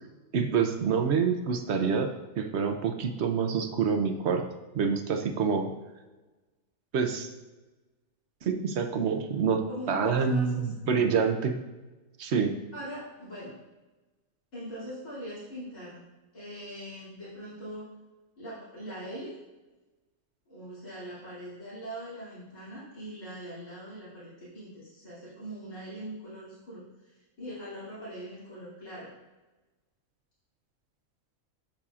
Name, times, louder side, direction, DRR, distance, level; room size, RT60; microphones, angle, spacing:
voice 1, 0.3-2.1 2.4-4.4 4.7-5.7 6.9-7.3 8.4-11.5 12.2-12.5, right 6 dB, 60° right, 6 dB, 0.9 m, -27 dB
voice 2, 9.7-11.1 12.7-13.6 14.5-17.9 18.4-19.4 20.5-29.1, equal, 85° left, -11 dB, 3.2 m, -41 dB
8.8 x 7.1 x 2.4 m, 1.2 s
omnidirectional pair, 1.4 m